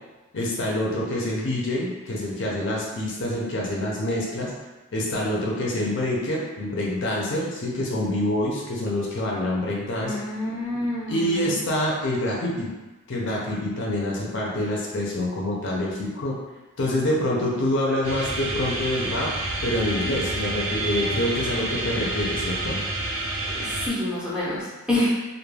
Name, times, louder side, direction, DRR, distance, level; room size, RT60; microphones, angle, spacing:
voice 1, 0.3-4.5 4.9-10.2 11.1-12.7 13.1-16.4 16.8-19.3 19.6-22.8, left 1 dB, 55° left, -3 dB, 0.5 m, -26 dB
voice 2, 10.0-11.6 23.4-25.1, left 1 dB, 5° right, -9 dB, 0.6 m, -28 dB
sound 1, 18.0-23.9, right 2 dB, 65° right, 0.5 m, -29 dB
2.3 x 2.1 x 3.2 m, 1.1 s
head